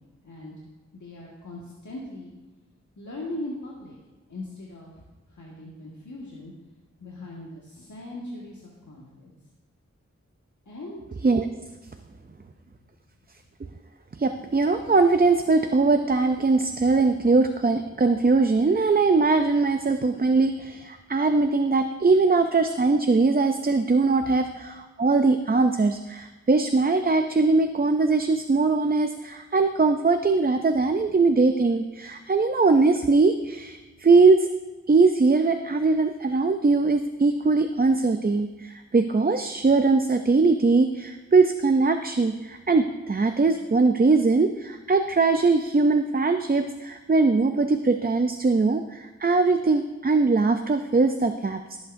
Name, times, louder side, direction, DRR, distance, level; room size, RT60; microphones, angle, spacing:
voice 1, 0.2-0.5 0.9-2.3 2.9-4.0 4.3-6.5 7.0-9.4 10.6-11.0 12.1-12.9 24.2-24.4 31.0-31.1 37.4-37.5, left 1 dB, 80° left, -5 dB, 1.7 m, -40 dB
voice 2, 14.2-34.5 34.9-51.8, right 3 dB, 30° right, 7 dB, 0.5 m, -21 dB
17.5 x 8.1 x 2.6 m, 1.2 s
wide cardioid pair, 65°, 29 cm